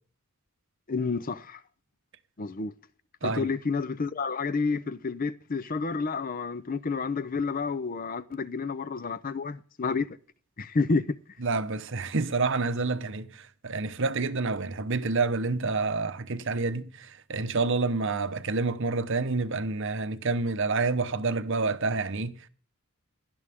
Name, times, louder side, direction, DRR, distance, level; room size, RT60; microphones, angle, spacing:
voice 1, 0.9-1.6 2.4-2.7 3.2-10.1 10.6-11.2, left 4 dB, 40° left, 0.6 m, -30 dB
voice 2, 11.4-22.5, right 3 dB, 60° right, 1.0 m, -28 dB
17.5 x 11.5 x 3.6 m
head